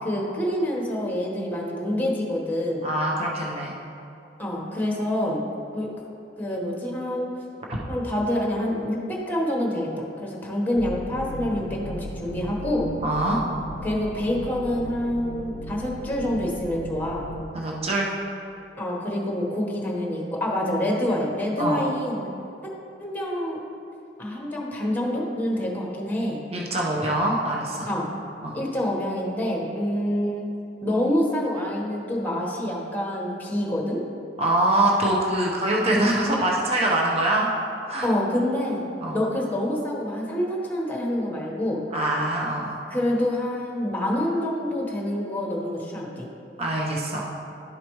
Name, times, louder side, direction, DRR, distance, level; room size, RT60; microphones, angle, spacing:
voice 1, 0.0-2.9 4.4-5.4 5.7-5.9 6.4-7.3 7.9-12.9 13.8-17.3 18.8-22.3 22.6-22.7 23.0-23.6 24.2-26.4 27.9-28.1 28.5-30.5 30.8-34.0 38.0-41.8 42.9-46.3, left 1 dB, 10° left, -2 dB, 1.2 m, -27 dB
voice 2, 2.8-3.7 13.0-13.4 17.5-18.1 21.6-21.8 26.5-27.9 28.4-28.6 34.4-37.5 37.9-38.1 39.0-39.2 41.9-42.8 46.6-47.3, right 1 dB, 35° right, -3 dB, 0.9 m, -24 dB
sound 1, 10.8-17.4, equal, 80° left, 0.5 m, -37 dB
12.0 x 5.0 x 3.1 m, 2.6 s
head